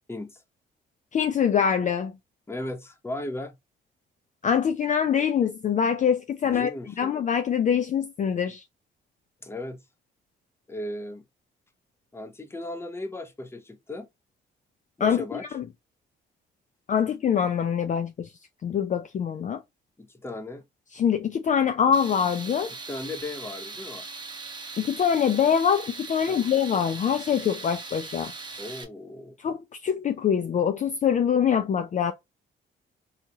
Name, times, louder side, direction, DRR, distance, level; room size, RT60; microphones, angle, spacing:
voice 1, 0.1-0.4 2.5-3.5 6.4-7.1 9.4-9.8 10.7-11.2 12.1-14.1 15.0-15.4 20.0-20.6 22.9-24.1 26.3-26.5 28.6-29.4, left 2 dB, 10° left, 0.7 m, -36 dB
voice 2, 1.1-2.1 4.4-6.7 7.0-8.6 15.0-15.6 16.9-18.3 18.6-19.6 20.9-22.7 24.8-28.3 29.4-32.1, left 8 dB, 40° left, 0.4 m, -24 dB
Tools, 21.9-28.8, right 3 dB, 25° right, 0.9 m, -40 dB
2.8 x 2.3 x 2.8 m
cardioid pair, 90°, 20 cm